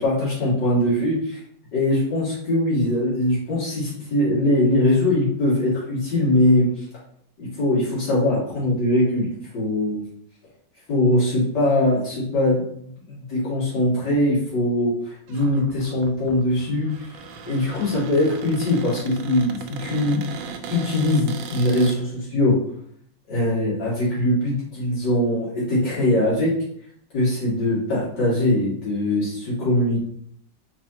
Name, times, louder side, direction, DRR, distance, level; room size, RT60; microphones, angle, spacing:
voice 1, 0.0-1.4 1.7-6.7 7.4-9.3 9.5-10.0 10.9-16.9 17.4-20.3 20.7-22.6 23.3-26.5 27.1-30.0, left 1 dB, 70° left, -7 dB, 2.7 m, -21 dB
Cupboard open or close, 15.3-22.0, right 6 dB, 85° right, 1.3 m, -38 dB
4.2 x 4.1 x 2.9 m, 0.67 s
omnidirectional pair, 2.0 m